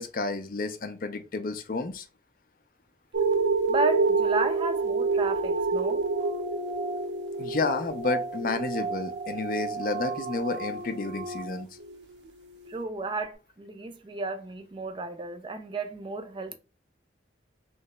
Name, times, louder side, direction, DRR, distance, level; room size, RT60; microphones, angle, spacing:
voice 1, 0.0-2.1 7.4-11.7, left 3 dB, 50° left, 0.4 m, -31 dB
sound 1, 3.1-12.0 12.7-12.8, right 4 dB, 80° right, 0.5 m, -28 dB
voice 2, 3.7-6.0 12.7-16.6, right 3 dB, 30° right, 0.4 m, -33 dB
3.1 x 2.8 x 3.1 m
head